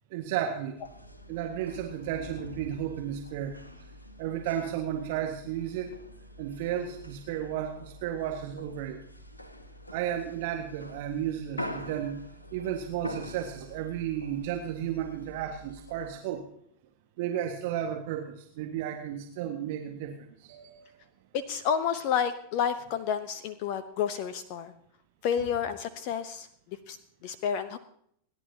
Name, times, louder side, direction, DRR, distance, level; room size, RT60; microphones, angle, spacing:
voice 1, 0.1-0.8 1.3-3.6 4.2-6.0 6.4-9.0 9.9-12.2 12.5-16.5 17.2-20.9, right 10 dB, 50° right, 3 dB, 1.6 m, -33 dB
sound 1, 0.8-16.1, left 1 dB, 85° left, 1.4 m, -45 dB
voice 2, 21.3-24.7 25.2-27.0 27.2-27.8, left 8 dB, 45° left, 13 dB, 0.8 m, -30 dB
28.5 x 11.0 x 2.8 m, 0.69 s
figure-of-eight pair, 90°, 0 cm